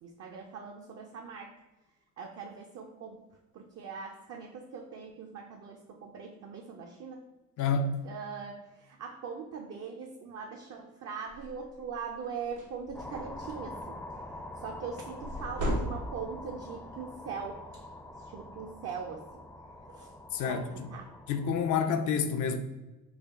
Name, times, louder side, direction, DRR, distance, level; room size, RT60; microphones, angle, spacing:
voice 1, 0.0-1.5 2.2-3.2 3.5-7.2 8.0-14.2 14.6-17.9 18.2-19.3 19.9-20.1 20.4-21.1, right 5 dB, 55° right, 0.5 m, -41 dB
voice 2, 7.6-7.9 20.3-20.9 21.3-22.6, left 6 dB, 75° left, 0.5 m, -28 dB
sound 1, 11.3-11.6 12.0-12.2 12.4-13.5 15.2-16.4, equal, 85° right, 0.9 m, -35 dB
sound 2, 12.9-21.6, left 1 dB, 5° left, 0.4 m, -45 dB
3.3 x 2.2 x 3.5 m
cardioid pair, 90°, 30 cm